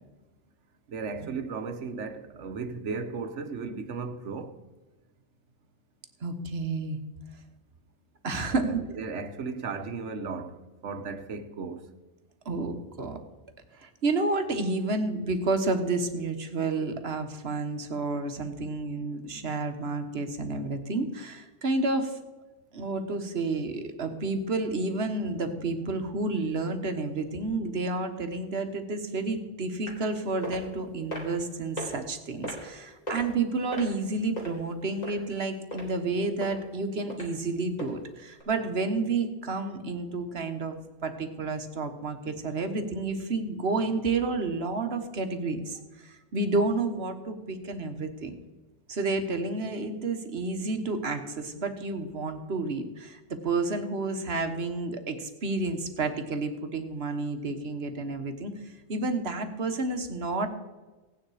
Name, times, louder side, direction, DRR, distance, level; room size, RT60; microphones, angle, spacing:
voice 1, 0.9-4.6 8.4-11.9, right 4 dB, 85° right, 1.3 m, -35 dB
voice 2, 6.2-7.0 8.2-8.8 12.4-13.2 13.8-22.2 22.7-48.3 48.9-60.5, right 3 dB, 60° right, 1.4 m, -30 dB
sound 1, 29.9-30.1 30.4-30.6 31.1-31.4 31.8-31.9 32.4-32.7 33.1-33.3 33.7-34.5 35.0-35.4 35.7-35.8 36.4-36.6 37.1-37.3 37.8-37.9 38.4-38.5, equal, 35° left, 3.3 m, -36 dB
16.5 x 9.5 x 4.8 m
omnidirectional pair, 1.2 m